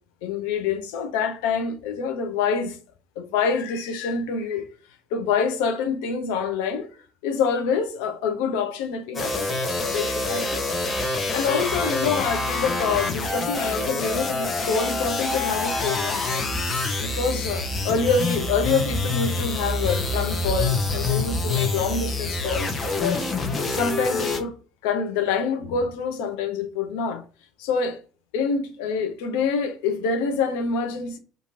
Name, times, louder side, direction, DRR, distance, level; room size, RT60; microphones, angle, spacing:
voice 1, 0.2-2.8 3.2-4.6 5.1-6.9 7.2-9.6 9.9-10.6 11.3-16.5 17.0-23.2 23.7-24.6 24.8-27.2 27.6-28.0 28.3-31.2, left 5 dB, 65° left, 0.5 m, -26 dB
sound 1, 9.1-24.4, left 2 dB, 30° left, 0.7 m, -26 dB
2.8 x 2.5 x 2.5 m
figure-of-eight pair, 55°, 0 cm